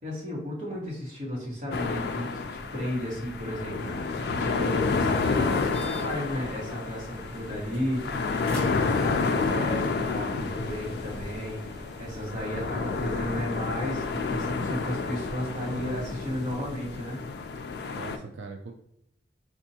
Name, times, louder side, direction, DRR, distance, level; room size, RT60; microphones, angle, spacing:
voice 1, 0.0-17.2, equal, 45° right, -4 dB, 1.3 m, -34 dB
sound 1, 1.7-18.2, left 4 dB, 60° left, 0.3 m, -30 dB
sound 2, 2.3-12.9, left 1 dB, 5° left, 1.1 m, -46 dB
sound 3, 3.8-16.6, equal, 20° right, 0.7 m, -49 dB
voice 2, 17.6-18.7, right 4 dB, 85° right, 3 dB, 0.4 m, -42 dB
4.4 x 2.4 x 2.8 m, 0.76 s
head